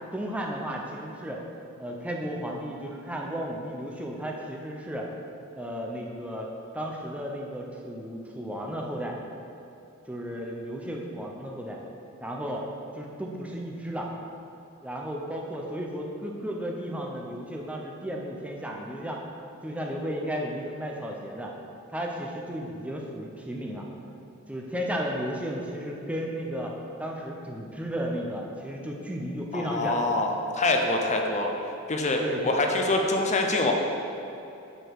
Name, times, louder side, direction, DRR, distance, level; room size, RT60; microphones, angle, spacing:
voice 1, 0.1-1.4 1.8-5.1 5.5-6.5 6.7-9.2 10.1-11.8 12.2-14.1 14.8-19.2 19.6-21.5 21.9-23.9 24.5-30.1 32.2-32.6, equal, 5° right, -1 dB, 0.7 m, -34 dB
voice 2, 29.5-31.5 31.9-33.7, left 2 dB, 35° left, 2 dB, 0.7 m, -25 dB
8.0 x 6.2 x 4.7 m, 2.8 s
head